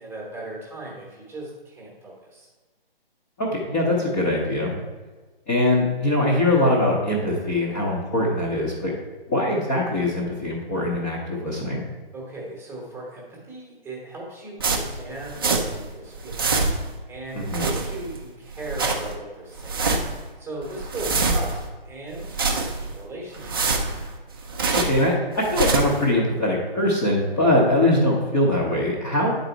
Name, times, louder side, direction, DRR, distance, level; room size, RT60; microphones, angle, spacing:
voice 1, 0.0-2.5 12.1-16.4 17.1-19.9 20.4-23.6, right 2 dB, 5° right, -4 dB, 1.0 m, -37 dB
voice 2, 3.4-4.7 5.5-8.9 9.3-11.8 17.4-17.7 24.7-29.3, left 1 dB, 15° left, -6 dB, 0.7 m, -22 dB
sound 1, 14.6-15.9 16.1-17.0 17.4-18.2 18.5-19.2 19.6-20.2 20.6-21.7 22.1-23.0 23.3-25.1 25.4-26.0, right 3 dB, 25° right, 0.5 m, -25 dB
9.6 x 4.0 x 4.5 m, 1.3 s
figure-of-eight pair, 145°, 30 cm